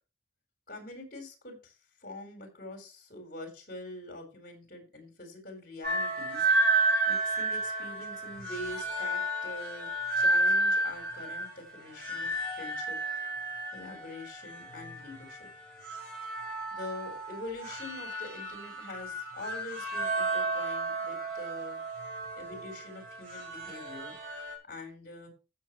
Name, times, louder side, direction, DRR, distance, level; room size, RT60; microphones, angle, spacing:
voice 1, 0.7-1.7 2.0-6.5 7.1-13.0 13.7-15.5 16.7-21.8 22.4-24.1 24.6-25.3, left 2 dB, 55° left, 5 dB, 4.0 m, -44 dB
sound 1, 5.8-24.6, right 2 dB, 60° right, 5.0 m, -32 dB
14.5 x 7.1 x 3.0 m, 0.31 s
head